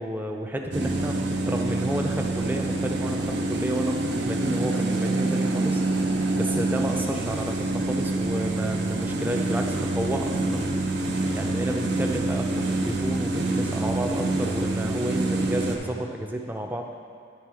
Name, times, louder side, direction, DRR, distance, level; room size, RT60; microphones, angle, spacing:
voice 1, 0.0-5.8 6.3-10.6 11.3-16.9, right 1 dB, 10° right, 2 dB, 0.4 m, -31 dB
sound 1, 0.7-15.8, right 2 dB, 60° right, 0.7 m, -26 dB
9.8 x 3.7 x 4.8 m, 2.5 s
head